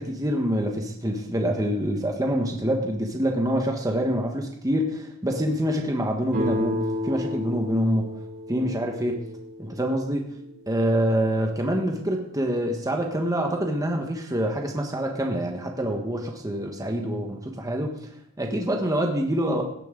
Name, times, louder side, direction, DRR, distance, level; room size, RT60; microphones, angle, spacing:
voice 1, 0.0-8.1 8.5-9.2 9.6-10.3 10.7-17.9 18.4-19.6, equal, 15° right, 2 dB, 1.3 m, -26 dB
sound 1, 6.3-9.9, left 2 dB, 45° right, 3.7 m, -31 dB
17.5 x 9.5 x 3.8 m, 0.72 s
head